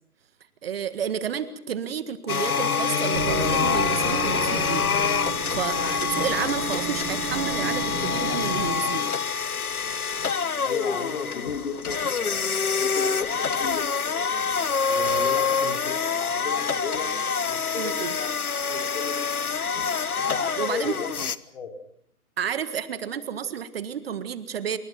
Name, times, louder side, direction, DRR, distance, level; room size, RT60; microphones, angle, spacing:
voice 1, 0.6-4.9 5.3-9.1 17.8-18.2 20.6-20.9 22.4-24.8, right 8 dB, 40° right, 12 dB, 1.8 m, -31 dB
sound 1, 2.3-21.4, left 6 dB, 70° left, 1.5 m, -26 dB
sound 2, 3.1-8.8, right 8 dB, 20° right, 2.0 m, -33 dB
voice 2, 10.6-14.3 14.9-17.1 17.4-18.3 18.6-19.8 20.2-21.1 21.5-21.7, left 6 dB, 45° left, 5 dB, 5.1 m, -36 dB
28.0 x 26.0 x 6.0 m, 0.64 s
figure-of-eight pair, 140°, 45 cm